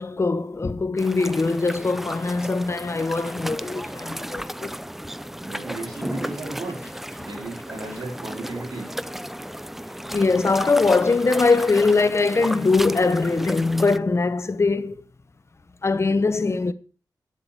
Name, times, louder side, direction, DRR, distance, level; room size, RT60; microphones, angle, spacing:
voice 1, 0.0-4.8 10.1-15.0 15.8-16.7, left 3 dB, 40° left, 0.8 m, -22 dB
sound 1, 1.0-14.0, equal, 5° right, 0.5 m, -34 dB
voice 2, 5.4-6.8 7.2-8.9, right 2 dB, 75° right, 4.3 m, -35 dB
9.0 x 7.6 x 6.5 m
wide cardioid pair, 85°, 7 cm